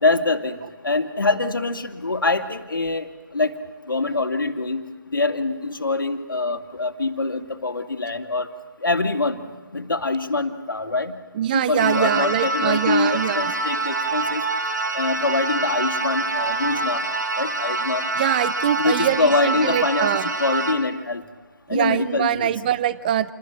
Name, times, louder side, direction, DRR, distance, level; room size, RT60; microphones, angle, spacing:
voice 1, 0.0-0.6 0.8-3.1 3.3-3.5 3.9-4.8 5.1-8.5 8.8-9.4 9.7-11.1 11.5-14.4 14.9-17.0 17.4-18.0 18.8-20.1 20.4-21.2 21.7-22.5, left 3 dB, 75° left, 5 dB, 2.4 m, -24 dB
voice 2, 11.3-13.5 18.1-20.3 21.7-23.3, right 10 dB, 25° right, 17 dB, 0.8 m, -23 dB
sound 1, 11.8-20.7, right 2 dB, 60° right, 4.2 m, -26 dB
28.0 x 21.0 x 9.0 m, 1.4 s
figure-of-eight pair, 150°, 11 cm